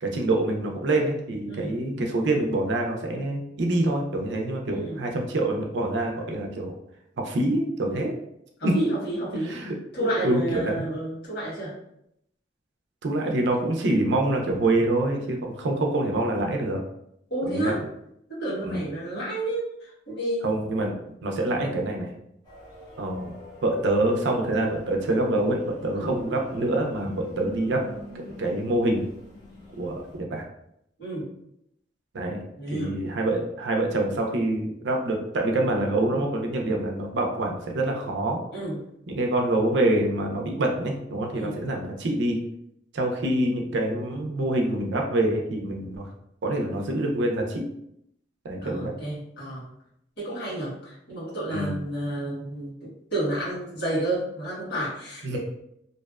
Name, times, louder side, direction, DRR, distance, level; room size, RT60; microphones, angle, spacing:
voice 1, 0.0-6.7 7.2-8.2 8.6-8.9 9.5-10.8 13.0-16.8 17.5-17.7 18.6-18.8 20.4-20.9 21.2-22.1 23.0-23.4 23.6-27.9 28.1-29.1 29.8-30.4 32.1-32.4 32.7-38.4 39.1-42.4 42.9-46.1 46.4-47.6 48.4-48.9 51.5-51.8 55.2-55.4, right 1 dB, 70° right, 2 dB, 0.4 m, -26 dB
voice 2, 1.5-1.8 4.7-5.0 8.6-9.6 9.9-11.7 17.3-17.8 18.3-20.5 25.9-26.1 31.0-31.3 32.6-33.0 38.5-38.8 41.3-41.6 48.6-49.7 50.2-55.4, right 1 dB, 70° left, -8 dB, 1.4 m, -31 dB
sound 1, 22.5-30.2, left 1 dB, 25° left, 0.6 m, -44 dB
2.5 x 2.1 x 2.3 m, 0.77 s
head